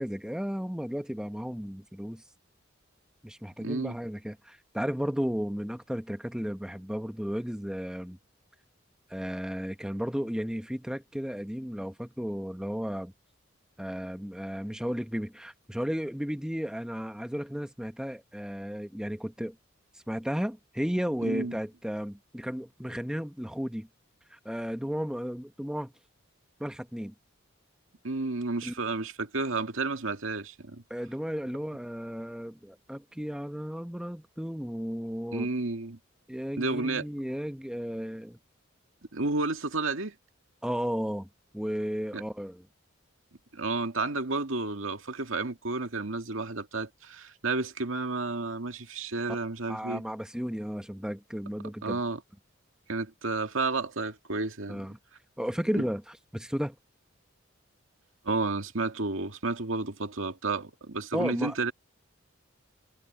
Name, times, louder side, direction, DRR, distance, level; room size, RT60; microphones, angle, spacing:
voice 1, 0.0-2.2 3.2-8.2 9.1-13.1 13.8-19.6 19.9-23.9 24.3-25.9 26.6-27.1 28.6-28.7 30.9-35.5 36.3-38.4 40.6-41.3 41.5-42.7 49.7-52.0 54.7-55.0 55.4-56.8 61.1-61.6, equal, 5° right, 1.0 m, -34 dB
voice 2, 3.6-4.0 21.2-21.5 28.0-30.8 35.3-36.0 36.6-37.0 39.1-40.1 42.1-42.2 43.5-50.0 51.8-52.2 52.9-54.8 55.7-55.8 58.2-61.7, right 3 dB, 80° right, 2.1 m, -31 dB
head